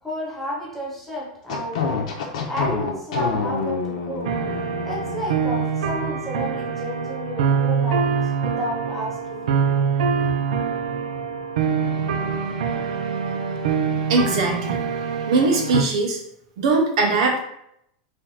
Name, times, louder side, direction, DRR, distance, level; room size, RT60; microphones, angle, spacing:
voice 1, 0.0-2.2 2.4-4.4 4.8-9.6 10.2-10.4, equal, 5° left, -6 dB, 0.7 m, -31 dB
sound 1, 1.5-5.6, left 5 dB, 70° left, 1.0 m, -28 dB
sound 2, 4.2-15.8, right 6 dB, 90° right, 0.6 m, -24 dB
voice 2, 14.1-14.8 15.3-16.2 16.6-17.4, right 3 dB, 55° right, 1 dB, 1.0 m, -20 dB
4.4 x 3.0 x 3.7 m, 0.75 s
supercardioid pair, 175°, 4 cm